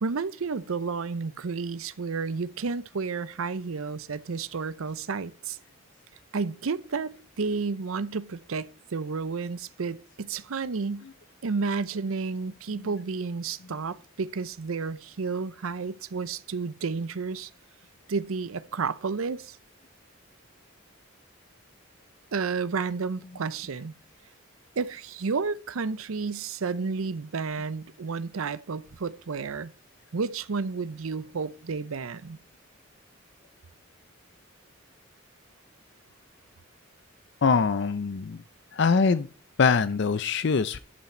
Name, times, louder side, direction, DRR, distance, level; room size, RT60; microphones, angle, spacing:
voice 1, 0.0-5.6 6.3-11.1 11.4-17.5 18.1-19.6 22.3-23.9 24.8-29.7 30.1-32.4, right 4 dB, 85° right, 0.6 m, -31 dB
voice 2, 37.4-38.4 38.7-39.3 39.6-40.8, left 5 dB, 55° left, 0.5 m, -23 dB
11.0 x 5.8 x 4.3 m
head